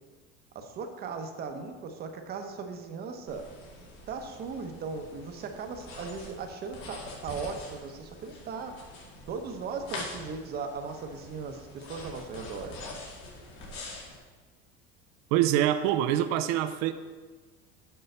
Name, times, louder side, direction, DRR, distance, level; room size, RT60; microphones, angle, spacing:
voice 1, 0.5-3.5 4.1-8.8 9.3-12.7, right 5 dB, 35° right, 5 dB, 0.9 m, -38 dB
sound 1, 3.3-14.2, left 2 dB, 75° left, 2.2 m, -44 dB
voice 2, 15.3-16.9, right 12 dB, 65° right, 10 dB, 0.5 m, -25 dB
6.7 x 5.5 x 6.6 m, 1.4 s
cardioid pair, 160°, 29 cm